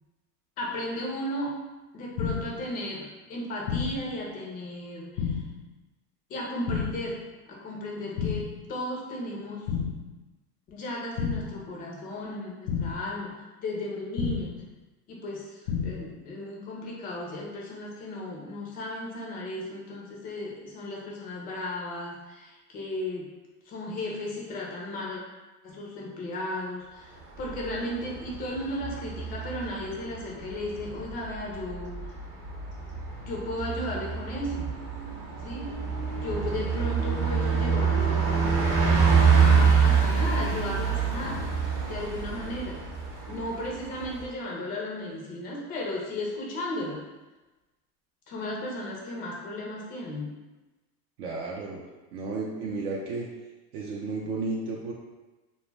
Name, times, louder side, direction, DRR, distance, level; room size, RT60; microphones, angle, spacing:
voice 1, 0.6-5.4 6.3-9.7 10.7-14.6 15.1-23.3 23.6-25.2 25.6-32.0 33.2-34.7 35.4-35.9 36.2-38.6 39.3-41.5 41.9-42.8 43.3-47.0 48.3-50.3, left 1 dB, 20° left, -3 dB, 0.3 m, -35 dB
sound 1, 2.2-2.6 3.7-4.1 5.2-5.6 6.7-7.1 8.2-8.6 9.7-10.1 11.2-11.6 12.7-13.1 14.2-14.6 15.7-16.1, left 7 dB, 75° left, 0.5 m, -31 dB
Bus, 27.2-44.3, right 5 dB, 35° right, 0.6 m, -26 dB
voice 2, 51.2-51.8 52.1-53.3 53.7-54.9, right 3 dB, 75° right, -3 dB, 0.6 m, -33 dB
2.2 x 2.1 x 3.2 m, 1.1 s
hypercardioid pair, 115°, 48 cm